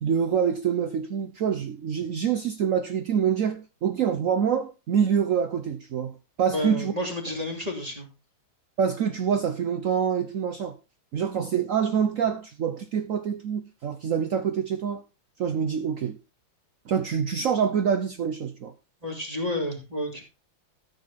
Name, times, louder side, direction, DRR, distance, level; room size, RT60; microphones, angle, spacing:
voice 1, 0.0-6.9 8.8-10.8 11.1-15.0 15.4-16.2 16.9-18.7, right 7 dB, 80° right, 0.7 m, -26 dB
voice 2, 6.5-8.1 19.0-20.2, left 1 dB, 15° right, 2.7 m, -30 dB
13.5 x 6.8 x 4.0 m
omnidirectional pair, 2.3 m